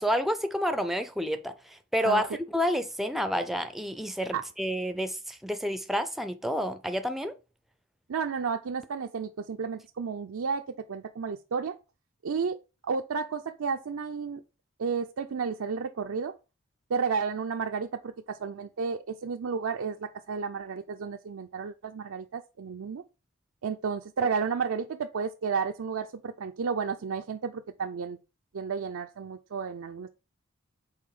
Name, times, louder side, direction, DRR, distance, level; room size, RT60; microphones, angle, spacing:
voice 1, 0.0-7.3, equal, ahead, 0.4 m, -29 dB
voice 2, 8.1-11.8 12.2-12.6 12.8-14.4 14.8-16.3 16.9-23.0 23.6-28.2 28.5-30.1, right 5 dB, 85° right, 0.5 m, -32 dB
5.6 x 4.3 x 4.8 m
head